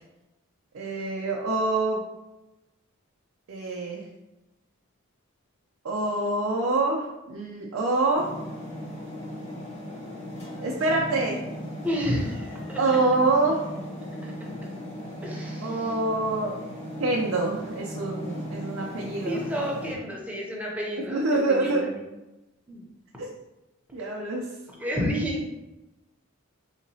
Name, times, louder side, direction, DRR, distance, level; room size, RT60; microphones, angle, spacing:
voice 1, 0.7-2.0 3.5-4.0 5.8-8.3 10.6-11.4 12.8-13.6 15.6-16.6 17.0-19.4 21.1-21.9 23.2-23.3 23.9-24.5, right 2 dB, 65° right, -2 dB, 0.5 m, -26 dB
sound 1, 8.1-19.9, equal, 30° left, 0.8 m, -37 dB
voice 2, 11.8-13.0 14.2-14.5 15.2-15.9 19.2-22.0 22.7-22.8 24.8-25.5, equal, 5° right, -3 dB, 0.6 m, -31 dB
3.8 x 2.8 x 2.7 m, 0.98 s
head